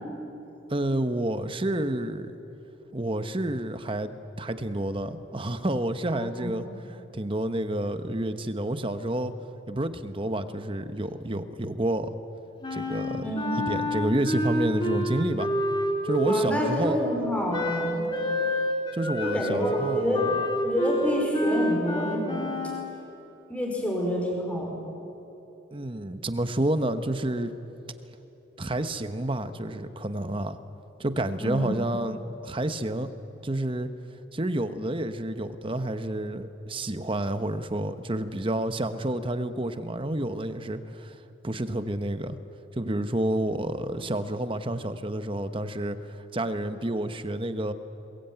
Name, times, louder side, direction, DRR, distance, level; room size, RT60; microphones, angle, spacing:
voice 1, 0.7-2.4 2.9-6.6 7.1-9.3 9.7-12.1 12.7-13.2 13.7-15.5 16.0-17.0 18.9-20.3 25.7-27.5 28.6-30.6 31.0-33.1 33.4-33.9 34.3-41.1 41.4-42.4 42.8-47.7, right 1 dB, 25° right, 10 dB, 0.9 m, -29 dB
voice 2, 6.1-6.7 13.2-13.7 16.2-18.1 19.2-20.3 20.6-22.5 23.5-24.8 31.4-31.7, equal, 5° left, -1 dB, 5.0 m, -28 dB
Wind instrument woodwind instrument, 12.6-16.8 17.5-22.9, equal, 25° left, 2.6 m, -28 dB
21.5 x 21.5 x 9.0 m, 3.0 s
head